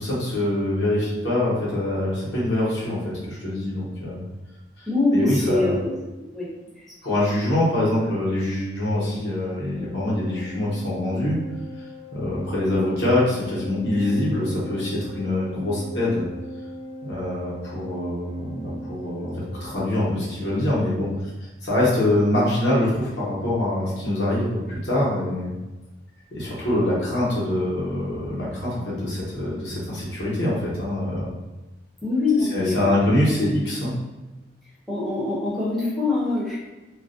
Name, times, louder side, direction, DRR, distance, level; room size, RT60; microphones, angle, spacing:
voice 1, 0.0-4.2 4.8-4.9 5.1-5.7 7.0-11.4 12.1-16.2 17.0-21.2 21.6-25.5 26.3-31.3 32.5-33.9, left 1 dB, 75° left, -7 dB, 0.9 m, -24 dB
voice 2, 4.9-5.9 6.3-6.5 7.1-7.2 32.0-32.9 34.9-36.6, left 2 dB, ahead, -8 dB, 0.5 m, -23 dB
Organ, 9.7-20.5, equal, 50° left, 0.6 m, -39 dB
2.4 x 2.1 x 2.5 m, 1.1 s
head